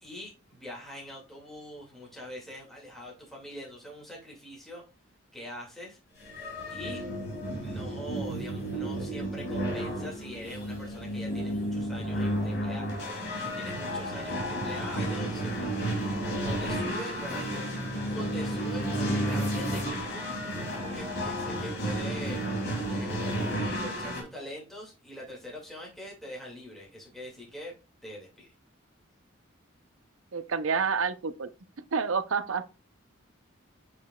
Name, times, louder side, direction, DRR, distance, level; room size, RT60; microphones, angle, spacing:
voice 1, 0.0-4.8 5.3-6.0 6.7-7.0 7.6-12.9 13.4-15.7 16.4-22.4 23.0-27.7 28.0-28.5, equal, ahead, 2.1 m, -43 dB
sound 1, 6.2-24.2, equal, 55° left, 3.2 m, -32 dB
voice 2, 30.3-31.5 31.9-32.7, right 5 dB, 80° right, 0.6 m, -28 dB
8.3 x 5.2 x 2.3 m
head